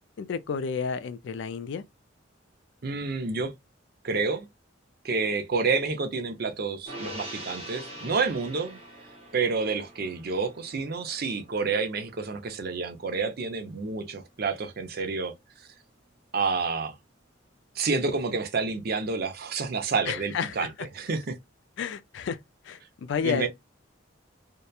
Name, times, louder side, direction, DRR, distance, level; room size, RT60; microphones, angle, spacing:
voice 1, 0.2-1.8 20.1-20.7 21.8-22.4 22.6-23.5, left 6 dB, 60° left, 0.3 m, -31 dB
voice 2, 2.8-3.5 4.0-4.5 5.0-8.8 9.3-15.3 16.3-17.0 17.8-20.7 20.9-21.3 23.2-23.5, right 4 dB, 50° right, 0.5 m, -29 dB
Gong, 6.9-13.5 13.8-14.0, right 1 dB, 30° right, 1.1 m, -44 dB
2.8 x 2.1 x 2.2 m
head